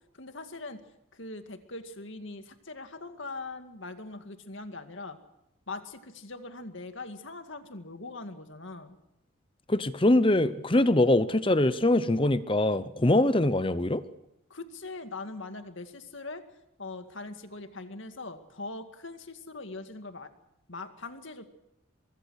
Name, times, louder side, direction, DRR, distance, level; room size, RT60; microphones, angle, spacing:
voice 1, 0.1-0.8 1.1-5.2 5.7-9.0 14.5-16.5 16.8-20.3 20.7-21.5, left 3 dB, 65° left, 8 dB, 2.1 m, -41 dB
voice 2, 9.7-14.0, left 1 dB, 25° left, 14 dB, 0.8 m, -23 dB
24.0 x 23.0 x 6.5 m, 0.86 s
head